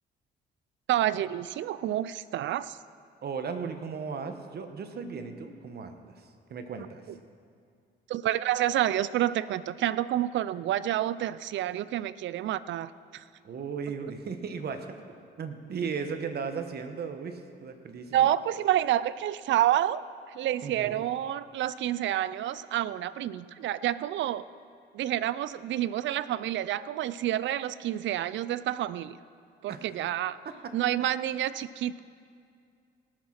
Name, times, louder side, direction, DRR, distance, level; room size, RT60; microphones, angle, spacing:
voice 1, 0.9-2.8 8.1-13.3 18.1-24.4 24.9-29.2 29.6-30.4 30.7-32.0, right 12 dB, 70° right, 17 dB, 0.4 m, -29 dB
voice 2, 3.2-7.0 13.4-14.9 15.4-18.3 20.6-21.0 29.7-29.8 30.4-30.7, right 5 dB, 55° right, 7 dB, 1.2 m, -36 dB
19.0 x 6.4 x 5.9 m, 2.3 s
cardioid pair, 90°, 20 cm